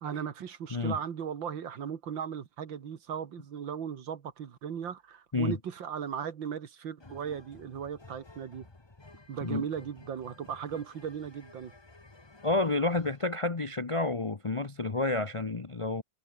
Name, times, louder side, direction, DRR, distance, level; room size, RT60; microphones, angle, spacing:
voice 1, 0.0-8.7 9.3-11.7, right 8 dB, 75° right, 2.3 m, -37 dB
sound 1, 7.0-13.3, left 2 dB, 15° left, 1.2 m, -54 dB
voice 2, 12.4-16.0, left 2 dB, 50° left, 0.3 m, -29 dB
omnidirectional pair, 2.1 m